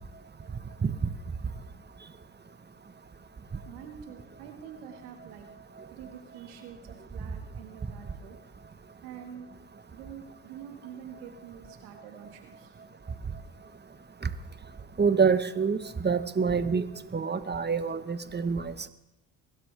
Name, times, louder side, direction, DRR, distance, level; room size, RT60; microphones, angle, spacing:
voice 1, 3.7-5.5 5.9-8.4 9.0-9.5 9.9-12.7, right 8 dB, 90° right, 5 dB, 1.9 m, -46 dB
voice 2, 15.0-16.8 17.1-18.9, right 5 dB, 25° right, 11 dB, 1.2 m, -26 dB
22.5 x 12.5 x 3.4 m, 0.88 s
hypercardioid pair, 60°, 44 cm